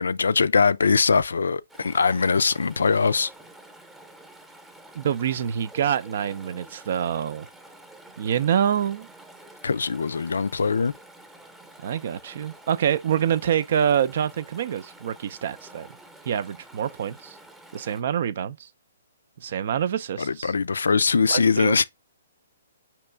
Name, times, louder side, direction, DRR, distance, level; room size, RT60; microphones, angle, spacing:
voice 1, 0.0-3.3 9.6-10.9 20.2-21.8, left 5 dB, 80° left, 0.3 m, -22 dB
Chatter / Stream, 1.7-18.0, right 1 dB, 5° right, 0.8 m, -49 dB
voice 2, 4.9-7.5 8.2-9.1 11.8-15.9 16.2-17.4 17.7-18.7 19.4-20.5 21.3-21.8, right 9 dB, 55° right, 0.5 m, -26 dB
5.1 x 2.9 x 3.3 m
hypercardioid pair, 130°, 0 cm